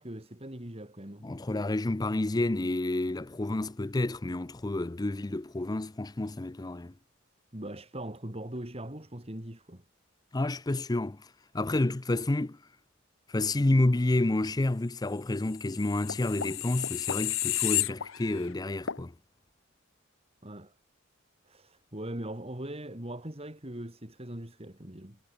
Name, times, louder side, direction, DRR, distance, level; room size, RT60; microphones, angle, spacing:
voice 1, 0.0-1.3 7.5-9.8 20.4-20.7 21.4-25.2, right 1 dB, 30° right, 3.1 m, -41 dB
voice 2, 1.2-6.9 10.3-11.3 11.5-12.6 13.3-19.1, left 2 dB, 20° left, 0.5 m, -29 dB
sound 1, 15.6-18.5 18.9-19.0, left 13 dB, 75° left, 0.8 m, -32 dB
head